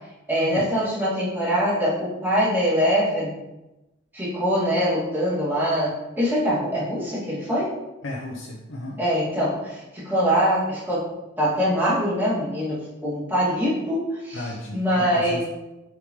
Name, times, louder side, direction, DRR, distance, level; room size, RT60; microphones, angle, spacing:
voice 1, 0.3-3.3 4.1-7.7 9.0-11.1 11.4-14.5 14.7-15.4, equal, 10° right, -10 dB, 2.3 m, -23 dB
voice 2, 8.0-9.0 14.3-15.4, left 1 dB, 75° left, -2 dB, 0.8 m, -34 dB
7.1 x 5.0 x 3.2 m, 0.99 s
head